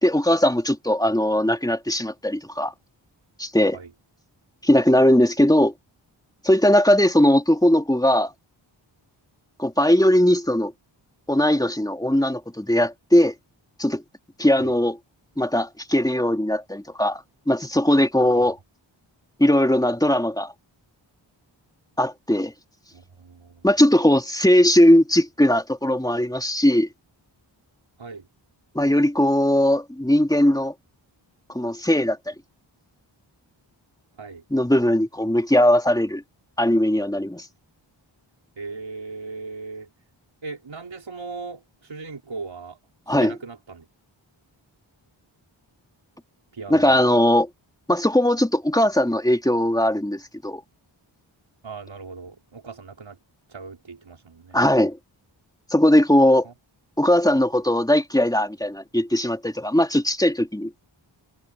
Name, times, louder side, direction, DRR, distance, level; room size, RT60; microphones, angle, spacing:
voice 1, 0.0-2.7 3.4-3.8 4.6-5.7 6.4-8.3 9.6-10.7 11.3-13.3 13.8-14.0 14.4-15.0 15.4-18.6 19.4-20.5 22.0-22.5 23.6-26.9 28.7-30.7 31.5-32.3 34.5-36.2 36.6-37.5 43.1-43.3 46.7-47.5 47.9-50.6 54.5-55.0 55.7-56.5 57.0-60.7, left 1 dB, 10° left, 3.0 m, -19 dB
voice 2, 22.9-23.7 28.0-28.2 34.2-34.4 38.6-39.9 40.4-42.8 43.2-43.8 46.5-47.0 51.6-53.2 53.5-54.6 56.4-56.5, right 4 dB, 70° right, 5.3 m, -38 dB
cardioid pair, 50°, 47 cm